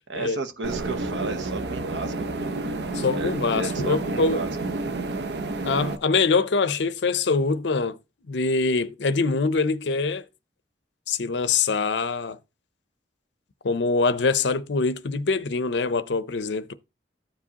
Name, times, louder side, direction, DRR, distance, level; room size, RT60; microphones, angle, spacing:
voice 1, 0.1-2.5 3.2-4.5, right 2 dB, 80° right, 0.9 m, -33 dB
sound 1, 0.6-6.0, right 2 dB, 65° right, 0.6 m, -30 dB
voice 2, 2.9-4.4 5.7-8.0 8.3-10.2 11.1-12.4 13.6-16.7, left 4 dB, 75° left, 0.6 m, -24 dB
14.5 x 4.8 x 2.8 m
head